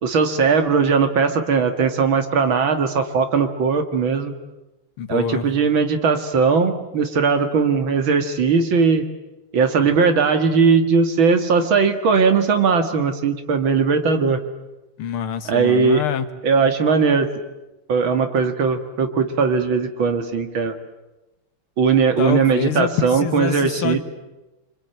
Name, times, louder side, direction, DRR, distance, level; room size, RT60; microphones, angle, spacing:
voice 1, 0.0-4.3 5.1-9.0 9.5-14.4 15.5-16.0 16.4-17.3 17.9-20.8 21.8-24.0, right 5 dB, 65° right, 8 dB, 2.6 m, -19 dB
voice 2, 5.0-5.5 15.0-16.3 22.2-24.0, left 9 dB, 85° left, 10 dB, 2.3 m, -25 dB
25.5 x 25.0 x 9.2 m, 1.0 s
omnidirectional pair, 2.3 m